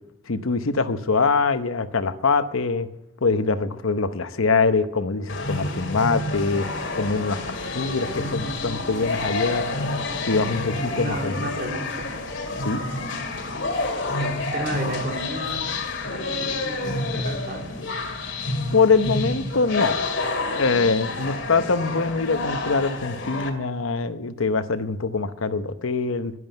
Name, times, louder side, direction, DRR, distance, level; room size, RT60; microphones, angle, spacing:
voice 1, 0.3-2.9 3.2-6.7 7.0-9.8 10.3-11.5 12.6-12.8 18.7-20.0 20.5-26.3, left 4 dB, 85° left, 11 dB, 0.9 m, -23 dB
sound 1, 5.3-23.5, left 2 dB, 60° left, 2.2 m, -29 dB
voice 2, 10.8-12.1 12.7-12.8 14.2-15.6 16.0-17.8, right 1 dB, 45° right, 2 dB, 2.8 m, -33 dB
11.0 x 11.0 x 9.0 m, 0.93 s
head